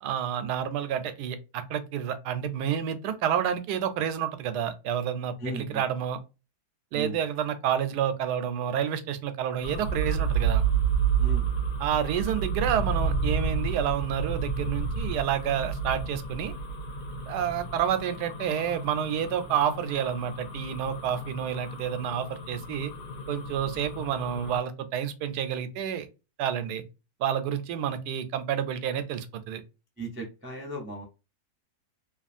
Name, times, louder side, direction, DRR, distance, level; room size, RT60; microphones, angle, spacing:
voice 1, 0.0-6.2 6.9-10.6 11.8-16.5 17.3-22.9 23.3-26.1 26.4-26.8 27.2-29.6, right 9 dB, 90° right, 1.2 m, -29 dB
voice 2, 5.4-5.8 6.9-7.2 11.2-11.6 30.0-31.0, right 1 dB, 20° right, 0.3 m, -37 dB
sound 1, 9.6-24.6, right 5 dB, 80° left, 1.3 m, -30 dB
3.1 x 2.4 x 2.5 m
omnidirectional pair, 1.7 m